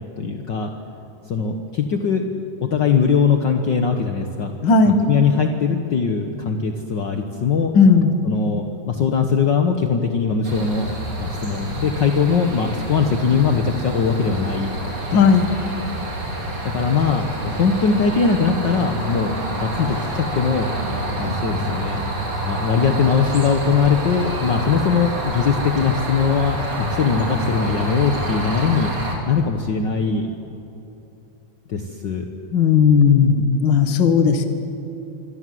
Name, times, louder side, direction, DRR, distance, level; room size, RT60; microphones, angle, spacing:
voice 1, 0.2-0.7 1.3-2.3 2.6-4.5 4.8-7.7 8.2-10.9 11.2-14.8 15.1-15.3 16.6-20.7 21.2-22.0 22.5-28.9 29.2-30.3 31.7-32.3, left 6 dB, 70° left, 4 dB, 1.0 m, -21 dB
voice 2, 4.6-5.0 7.7-8.2 15.1-15.5 32.5-34.5, left 5 dB, 45° left, 7 dB, 1.9 m, -15 dB
sound 1, 10.4-29.1, right 1 dB, 40° right, 4.4 m, -27 dB
27.0 x 24.5 x 7.8 m, 2.8 s
omnidirectional pair, 3.8 m